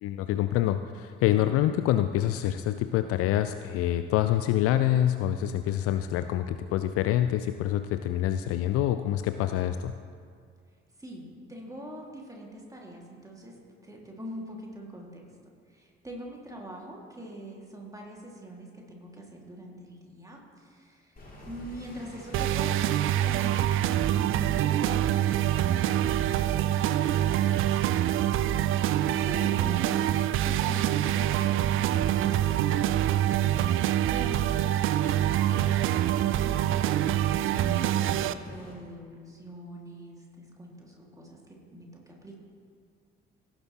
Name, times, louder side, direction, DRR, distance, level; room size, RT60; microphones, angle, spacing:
voice 1, 0.0-10.0, left 12 dB, 50° left, 11 dB, 0.4 m, -26 dB
voice 2, 11.0-13.5 13.8-15.3 15.7-22.7 23.2-28.7 29.2-35.1 35.4-42.4, right 1 dB, 10° right, -1 dB, 2.2 m, -44 dB
sound 1, 21.2-38.7, left 1 dB, 25° left, 2.9 m, -47 dB
sound 2, 22.3-38.3, right 12 dB, 40° right, 0.4 m, -25 dB
sound 3, 25.2-31.3, left 2 dB, 85° left, 1.6 m, -51 dB
16.5 x 7.3 x 3.0 m, 2.1 s
figure-of-eight pair, 45°, 32 cm